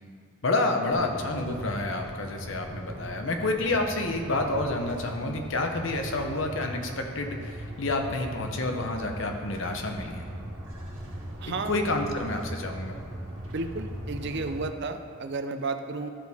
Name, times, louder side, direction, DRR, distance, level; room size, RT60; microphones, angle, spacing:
voice 1, 0.4-10.2 11.6-12.9, left 2 dB, 65° left, 3 dB, 0.9 m, -29 dB
sound 1, 0.9-14.6, equal, 80° right, 1.7 m, -39 dB
voice 2, 11.4-11.7 13.5-16.1, right 3 dB, 60° right, 8 dB, 0.6 m, -32 dB
13.0 x 6.2 x 3.6 m, 2.2 s
head